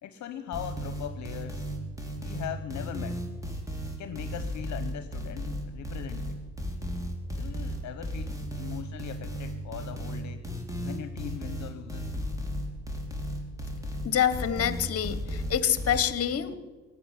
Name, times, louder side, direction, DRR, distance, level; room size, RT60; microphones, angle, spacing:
voice 1, 0.0-1.7 2.2-3.2 4.0-6.4 7.4-10.4 10.8-12.1, left 10 dB, 65° left, 9 dB, 1.0 m, -40 dB
sound 1, 0.5-16.0, equal, 10° right, 3.3 m, -34 dB
voice 2, 14.0-16.5, left 9 dB, 50° left, 14 dB, 1.3 m, -26 dB
17.5 x 8.2 x 9.9 m, 1.3 s
cardioid pair, 90°, 30 cm